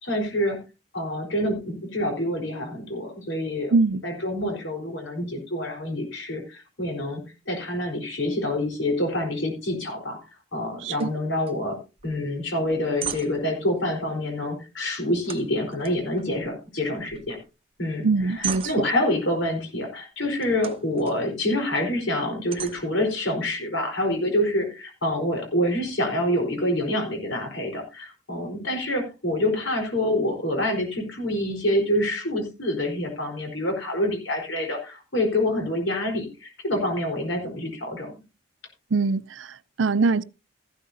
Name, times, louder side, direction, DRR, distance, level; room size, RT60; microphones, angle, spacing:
voice 1, 0.0-0.6 0.9-3.7 4.0-7.2 7.5-10.2 10.5-11.8 12.0-17.4 17.8-38.1, left 1 dB, 80° left, 4.3 m, -27 dB
voice 2, 3.7-4.0 10.8-11.1 18.0-18.7 38.9-40.2, right 4 dB, 80° right, 0.5 m, -23 dB
sound 1, 11.0-11.2 11.4-11.5 12.0-12.2 12.6-13.6 15.2-16.7 17.0-17.5 17.9-19.2 20.4-21.2 21.7-21.8 22.5-23.5, right 8 dB, 30° right, 0.8 m, -37 dB
14.5 x 12.5 x 2.8 m
head